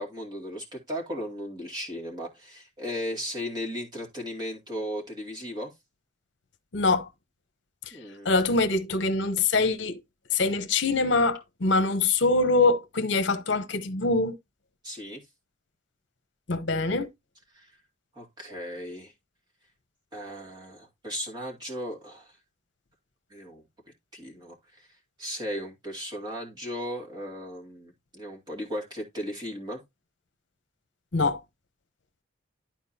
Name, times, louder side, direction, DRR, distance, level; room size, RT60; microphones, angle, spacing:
voice 1, 0.0-5.7 7.9-8.3 14.8-15.2 17.5-17.7 18.1-19.1 20.1-22.4 23.3-23.6 24.1-24.9 25.2-29.8, equal, 20° right, 2.3 m, -36 dB
voice 2, 6.7-7.1 8.2-10.0 10.3-14.3 16.5-17.1 31.1-31.4, left 3 dB, 65° left, 0.9 m, -24 dB
12.0 x 4.4 x 2.8 m
head